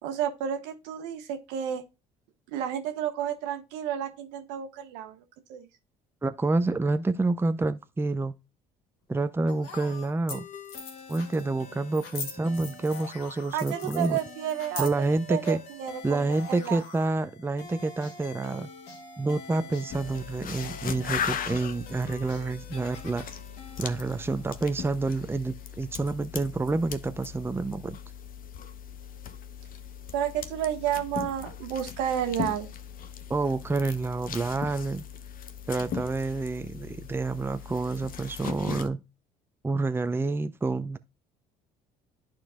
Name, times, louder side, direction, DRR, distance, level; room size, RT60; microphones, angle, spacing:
voice 1, 0.0-1.8 2.5-5.2 5.5-5.7 13.5-14.9 15.3-16.8 30.1-32.7, right 10 dB, 75° right, 1.2 m, -31 dB
voice 2, 6.2-8.4 9.1-10.5 11.1-14.2 14.8-15.6 16.0-18.7 19.2-23.3 23.8-28.0 33.3-35.0 35.7-39.0 39.6-41.0, right 3 dB, 10° right, 0.6 m, -28 dB
sound 1, 9.2-9.3 10.0-10.1 10.3-10.4 10.6-11.4 11.9-13.1 13.5-15.2, left 4 dB, 90° left, 1.5 m, -40 dB
sound 2, 9.5-25.0, left 4 dB, 70° left, 1.9 m, -46 dB
sound 3, 19.9-38.9, left 8 dB, 50° left, 0.9 m, -39 dB
12.0 x 4.5 x 2.3 m
hypercardioid pair, 60°, 19 cm